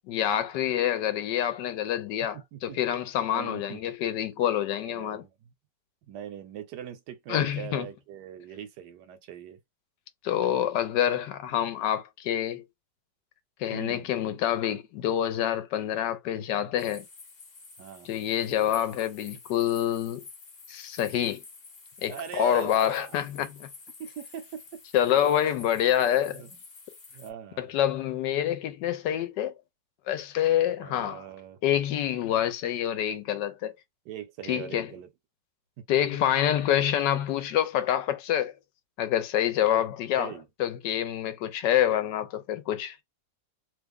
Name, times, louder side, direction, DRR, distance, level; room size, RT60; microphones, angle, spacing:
voice 1, 0.1-5.2 7.3-7.9 10.2-12.6 13.6-17.0 18.0-20.2 20.7-21.4 22.0-23.7 24.9-26.4 27.6-29.5 30.1-31.2 31.6-33.7 34.5-34.9 35.9-38.5 39.0-40.3 40.6-43.0, left 11 dB, 80° left, 1.2 m, -27 dB
voice 2, 2.3-2.8 3.3-3.9 4.8-5.5 6.1-9.6 13.7-14.1 15.9-16.0 17.8-18.1 22.1-23.2 24.0-24.8 25.1-25.5 26.2-26.6 27.1-27.7 30.7-31.6 34.0-35.1 39.7-39.9 40.2-40.4, right 8 dB, 75° right, 1.2 m, -41 dB
sound 1, 16.8-27.3, left 4 dB, 40° left, 1.0 m, -49 dB
3.1 x 2.1 x 3.5 m
omnidirectional pair, 1.9 m